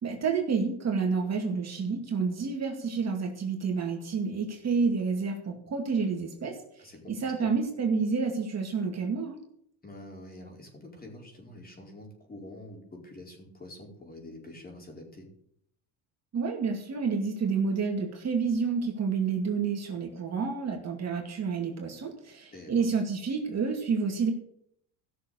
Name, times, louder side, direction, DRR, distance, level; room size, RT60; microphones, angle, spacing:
voice 1, 0.0-6.6 7.1-9.4 16.3-24.3, right 5 dB, 40° right, 2 dB, 2.3 m, -29 dB
voice 2, 6.8-7.5 9.8-15.3 22.5-22.9, left 1 dB, 20° left, 0 dB, 4.5 m, -46 dB
15.0 x 6.7 x 6.7 m, 0.69 s
cardioid pair, 105°, 41 cm